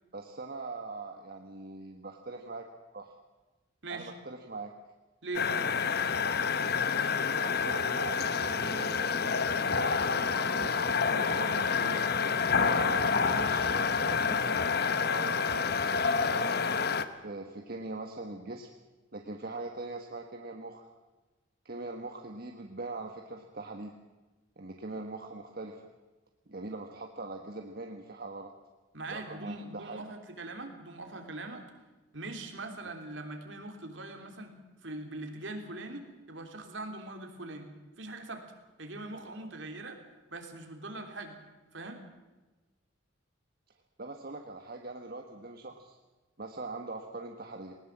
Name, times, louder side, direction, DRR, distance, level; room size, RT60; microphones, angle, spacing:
voice 1, 0.1-2.6 2.9-3.2 3.9-4.7 7.3-12.0 12.5-14.7 15.1-16.7 17.2-18.7 19.1-20.9 21.6-24.0 24.6-25.9 26.5-28.5 29.1-30.0 44.0-46.0 46.4-47.7, right 2 dB, 50° right, 3 dB, 1.5 m, -42 dB
voice 2, 5.2-5.5 28.9-31.7 32.1-34.5 34.8-37.7 38.0-38.5 38.8-40.0 40.3-41.4 41.7-42.0, right 2 dB, 70° right, 4 dB, 3.3 m, -41 dB
sound 1, 5.3-17.0, left 5 dB, 50° left, 1.0 m, -28 dB
19.5 x 19.5 x 7.4 m, 1.2 s
head